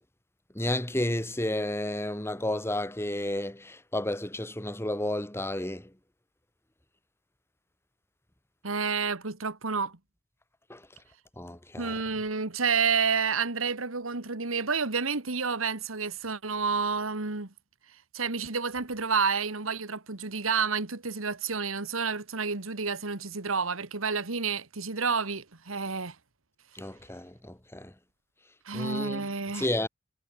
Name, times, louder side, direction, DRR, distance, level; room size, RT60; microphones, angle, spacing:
voice 1, 0.5-5.9 10.7-10.9 11.4-12.0 26.7-27.9 28.7-29.3 29.5-29.9, left 1 dB, 10° left, 2.4 m, -32 dB
voice 2, 8.6-10.0 11.8-17.5 18.1-26.2 28.7-29.7, right 5 dB, 90° right, 2.0 m, -29 dB
head